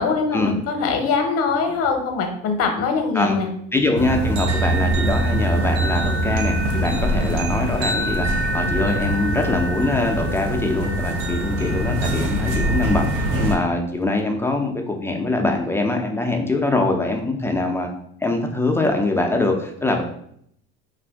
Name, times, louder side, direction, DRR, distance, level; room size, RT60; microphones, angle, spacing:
voice 1, 0.0-3.5, left 4 dB, 50° left, 4 dB, 0.7 m, -22 dB
voice 2, 3.7-17.9 18.2-20.0, left 2 dB, 10° left, 2 dB, 0.4 m, -23 dB
sound 1, 4.0-13.6, right 1 dB, 80° right, 0.6 m, -23 dB
2.6 x 2.4 x 3.4 m, 0.70 s
supercardioid pair, 95°, 30 cm